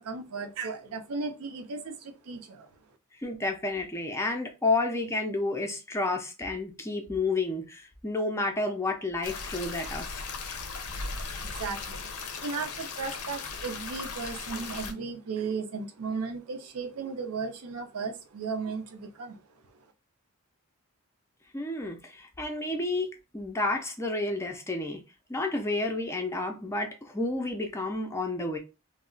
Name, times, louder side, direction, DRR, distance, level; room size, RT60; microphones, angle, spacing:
voice 1, 0.0-2.7 11.4-19.4, right 4 dB, 75° right, 0.6 m, -35 dB
voice 2, 3.2-10.2 21.5-23.1 23.3-25.0 25.3-28.6, left 2 dB, 10° left, 0.4 m, -30 dB
sound 1, 9.2-14.9, left 4 dB, 75° left, 0.5 m, -37 dB
2.3 x 2.0 x 3.7 m
head